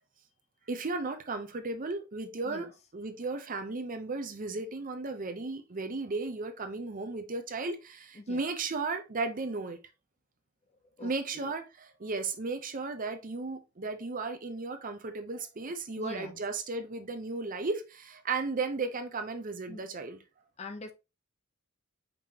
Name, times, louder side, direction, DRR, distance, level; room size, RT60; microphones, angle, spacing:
voice 1, 0.7-9.8 11.0-20.2, right 3 dB, 40° right, 0.6 m, -35 dB
voice 2, 11.0-11.5 16.0-16.3 19.7-19.9 20.6-20.9, left 2 dB, 30° left, 0.5 m, -43 dB
5.1 x 3.5 x 2.8 m
head